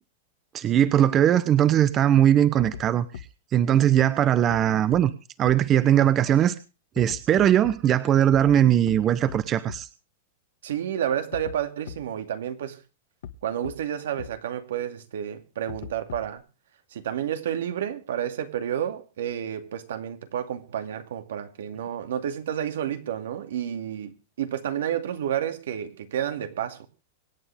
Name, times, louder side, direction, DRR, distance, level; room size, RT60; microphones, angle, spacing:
voice 1, 0.5-3.1 3.5-5.1 5.4-6.5 7.0-9.9, right 10 dB, 25° right, 0.9 m, -20 dB
sound 1, 2.6-2.8 3.1-3.2 4.5-4.6 4.9-5.0 5.5-5.6 7.0-7.7 8.3-8.6 8.9-9.0 9.3-9.4 9.7-9.8 11.3-11.6 11.9-12.0 13.2-13.3 13.6-13.7 14.2-14.3 15.7-16.4, left 10 dB, 75° left, 1.9 m, -38 dB
voice 2, 10.6-12.8 13.4-16.4 16.9-26.9, right 10 dB, 85° right, 2.5 m, -30 dB
25.0 x 9.0 x 3.5 m
supercardioid pair, 160°, 0 cm